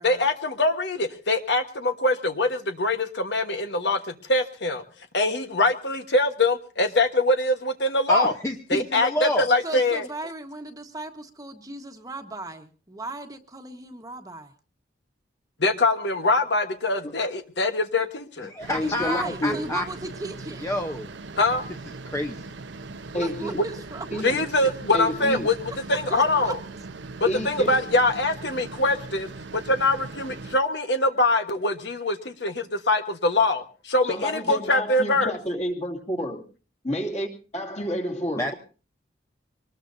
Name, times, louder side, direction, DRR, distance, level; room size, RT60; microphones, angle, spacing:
voice 1, 0.0-4.8 5.1-8.3 8.7-10.1 15.6-18.5 21.4-21.6 23.6-23.7 24.2-25.5 25.9-26.6 27.2-35.3, left 2 dB, 65° left, 7 dB, 1.3 m, -23 dB
voice 2, 8.1-9.5 18.4-19.8 20.6-21.1 22.1-22.5 38.4-38.5, left 1 dB, 15° left, 4 dB, 0.8 m, -28 dB
voice 3, 9.6-14.5 18.8-20.7 23.1-24.4 26.1-26.5, right 2 dB, 20° right, 6 dB, 1.3 m, -37 dB
sound 1, 18.6-30.6, right 3 dB, 75° right, 0.8 m, -40 dB
voice 4, 18.7-19.6 23.1-23.6 24.1-24.4 24.9-25.5 27.2-27.9 34.0-36.4 36.8-38.5, equal, 35° left, 2 dB, 2.6 m, -30 dB
24.0 x 19.5 x 2.7 m, 0.35 s
head